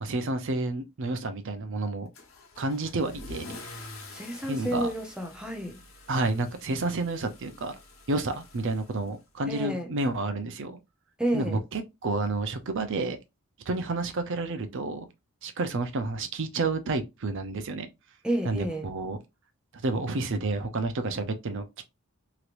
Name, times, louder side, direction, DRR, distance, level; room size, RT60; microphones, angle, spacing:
voice 1, 0.0-2.1 2.6-3.6 4.4-4.9 6.1-7.8 8.1-10.8 11.3-13.2 13.7-15.1 15.4-17.9 18.4-19.2 19.7-21.8, right 2 dB, 60° right, 0.5 m, -30 dB
Car / Engine starting / Accelerating revving vroom, 2.1-9.5, left 2 dB, 65° left, 1.0 m, -47 dB
voice 2, 4.1-5.8 9.5-9.9 11.2-11.6 18.2-18.9, right 1 dB, 5° right, 0.7 m, -30 dB
3.2 x 2.9 x 2.5 m
head